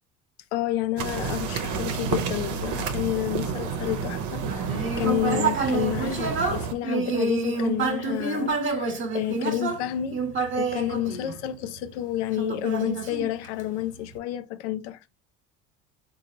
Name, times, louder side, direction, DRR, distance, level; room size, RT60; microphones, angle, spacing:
voice 1, 0.5-10.2 10.6-15.1, left 13 dB, 85° left, 0.5 m, -30 dB
sound 1, 1.0-6.7, right 6 dB, 65° right, 0.7 m, -30 dB
Human voice, 4.4-11.8 12.4-13.8, right 4 dB, 35° right, 1.1 m, -28 dB
3.8 x 2.3 x 2.8 m
supercardioid pair, 80°, 33 cm